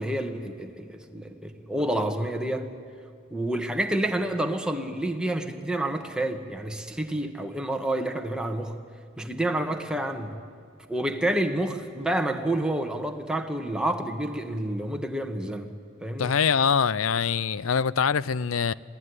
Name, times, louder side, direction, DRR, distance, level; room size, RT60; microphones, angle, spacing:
voice 1, 0.0-2.7 3.3-8.7 9.2-10.3 10.9-15.7 16.0-16.3, right 1 dB, 5° right, 1.6 m, -29 dB
voice 2, 16.2-18.7, left 6 dB, 80° left, 0.6 m, -24 dB
26.5 x 17.5 x 9.7 m
head